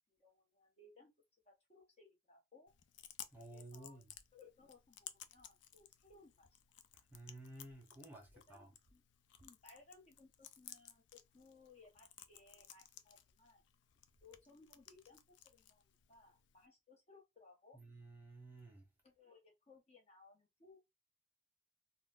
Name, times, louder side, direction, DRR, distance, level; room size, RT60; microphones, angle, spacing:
voice 1, 0.1-1.1 1.5-2.7 3.5-4.0 4.3-6.6 8.5-9.0 9.4-13.6 14.2-15.8 16.1-17.8 19.0-20.8, left 3 dB, 35° left, 0.8 m, -64 dB
Chewing mastication, 2.7-16.7, left 10 dB, 80° left, 0.4 m, -58 dB
voice 2, 3.3-4.1 7.1-8.7 17.7-18.8, right 2 dB, 10° right, 0.7 m, -54 dB
3.8 x 2.1 x 2.4 m
head